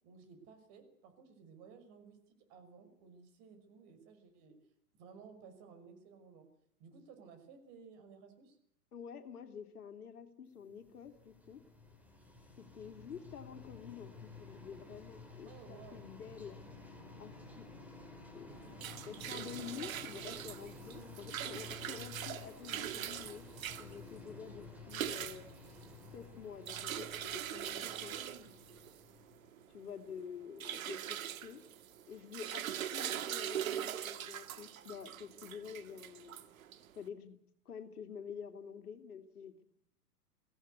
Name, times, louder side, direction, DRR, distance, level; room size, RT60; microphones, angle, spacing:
voice 1, 0.0-4.6 5.0-6.4 6.8-8.6 13.5-13.7 15.5-16.1 18.8-19.2 20.9-21.5 27.8-28.5, right 5 dB, 40° right, 8 dB, 5.9 m, -57 dB
voice 2, 8.9-11.6 12.6-16.6 17.2-17.7 18.3-18.5 19.1-23.4 23.8-25.5 26.1-28.2 29.7-31.6 32.1-32.6 32.9-36.4 37.0-37.4 37.6-39.5, left 7 dB, 65° left, 7 dB, 2.9 m, -48 dB
sound 1, 10.8-29.8, left 3 dB, 5° right, 4.3 m, -53 dB
sound 2, 18.5-37.0, right 10 dB, 60° right, 1.9 m, -42 dB
23.5 x 17.0 x 8.3 m, 0.76 s
figure-of-eight pair, 115°, 48 cm